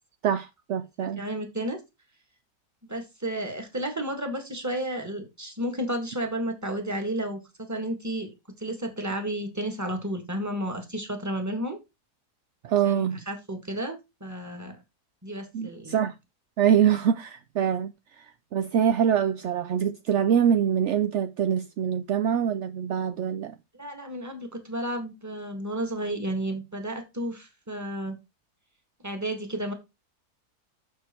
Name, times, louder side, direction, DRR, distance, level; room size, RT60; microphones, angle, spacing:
voice 1, 0.2-1.2 12.6-13.2 15.5-16.1 16.6-23.6, right 8 dB, 70° right, 0.6 m, -24 dB
voice 2, 1.0-1.8 2.9-8.3 8.6-11.8 12.8-14.8 15.2-16.0 23.7-28.2 29.0-29.7, right 1 dB, 10° right, 1.6 m, -32 dB
7.0 x 6.6 x 4.4 m
omnidirectional pair, 1.8 m